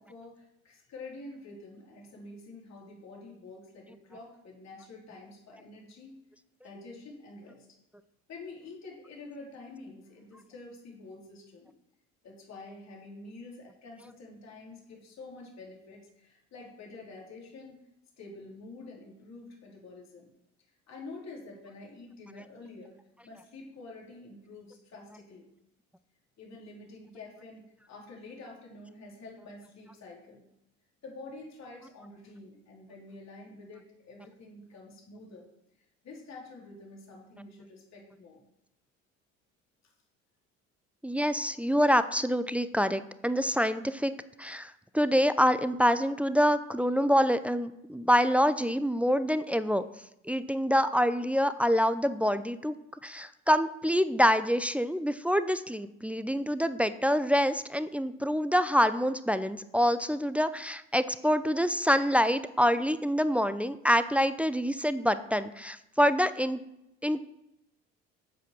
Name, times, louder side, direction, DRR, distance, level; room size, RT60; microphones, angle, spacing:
voice 1, 0.0-6.2 6.6-7.7 8.3-11.7 12.2-17.8 18.2-20.3 20.9-23.0 23.2-25.4 26.4-30.4 31.0-35.5 35.8-38.4, left 3 dB, 45° left, -2 dB, 3.9 m, -48 dB
voice 2, 41.0-44.1 44.4-49.8 50.2-52.7 53.0-66.6 67.0-67.2, equal, 5° right, 12 dB, 0.6 m, -26 dB
8.3 x 7.5 x 6.1 m, 0.83 s
hypercardioid pair, 60°, 37 cm